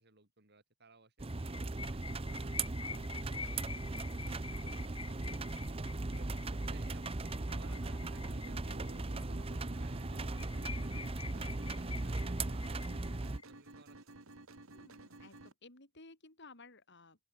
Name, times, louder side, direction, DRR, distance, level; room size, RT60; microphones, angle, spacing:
voice 1, 0.0-1.5 1.9-13.0 13.4-14.2, right 3 dB, 55° right, 6.9 m, -63 dB
sound 1, 1.2-13.4, right 2 dB, 30° right, 0.8 m, -38 dB
sound 2, 1.3-9.2 9.6-9.7 10.0-10.1 10.3-13.4, left 5 dB, 25° left, 0.9 m, -48 dB
sound 3, 2.9-15.5, right 2 dB, 80° right, 2.8 m, -55 dB
voice 2, 14.7-17.2, left 3 dB, 60° left, 7.3 m, -57 dB
open air
head